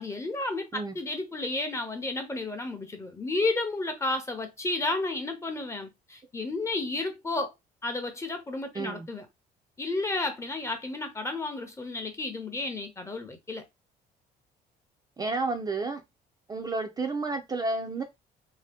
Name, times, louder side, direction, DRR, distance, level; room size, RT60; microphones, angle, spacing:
voice 1, 0.0-7.5 7.8-9.2 9.8-13.6, left 2 dB, 15° left, 0.7 m, -32 dB
voice 2, 8.7-9.1 15.2-16.0 16.5-18.0, right 3 dB, 20° right, 0.5 m, -31 dB
2.8 x 2.0 x 3.4 m
cardioid pair, 110°, 17 cm